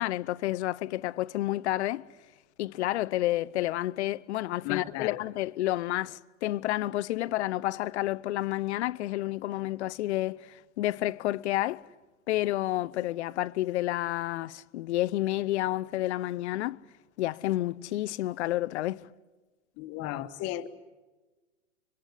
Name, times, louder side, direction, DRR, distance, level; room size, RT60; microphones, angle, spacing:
voice 1, 0.0-2.0 2.6-11.8 12.3-16.8 17.2-19.1, left 16 dB, 60° left, 0.8 m, -30 dB
voice 2, 4.6-5.2 19.8-20.7, left 14 dB, 40° left, 1.5 m, -34 dB
25.5 x 24.5 x 8.2 m
hypercardioid pair, 105°, 38 cm